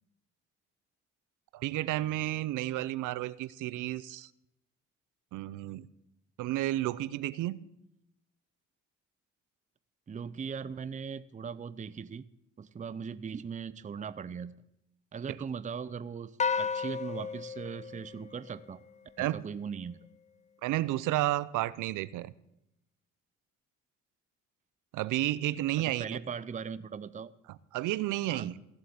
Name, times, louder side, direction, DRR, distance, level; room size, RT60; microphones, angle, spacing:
voice 1, 1.5-4.3 5.3-5.9 6.4-7.6 19.2-19.4 20.6-22.3 24.9-26.2 27.7-28.5, right 15 dB, 85° right, 0.6 m, -31 dB
voice 2, 10.1-12.2 12.6-14.5 15.1-18.8 19.2-20.0 25.8-27.3 28.3-28.6, right 6 dB, 25° right, 0.6 m, -39 dB
sound 1, 16.4-18.9, left 6 dB, 25° left, 0.5 m, -34 dB
15.5 x 7.6 x 8.6 m
cardioid pair, 90°, 30 cm